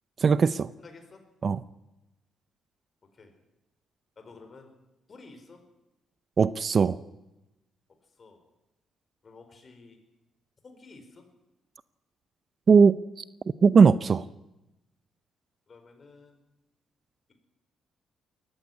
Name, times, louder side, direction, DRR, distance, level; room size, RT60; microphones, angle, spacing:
voice 1, 0.2-0.7 1.4-1.6 6.4-7.0 12.7-13.2 13.6-14.2, right 5 dB, 45° right, 17 dB, 0.6 m, -19 dB
voice 2, 0.8-1.2 3.1-3.3 4.2-4.7 5.1-5.6 8.1-8.5 9.2-10.0 10.6-11.3 15.7-16.4, left 3 dB, 40° left, 5 dB, 5.0 m, -51 dB
20.0 x 14.5 x 9.7 m, 0.99 s
cardioid pair, 90°, 0 cm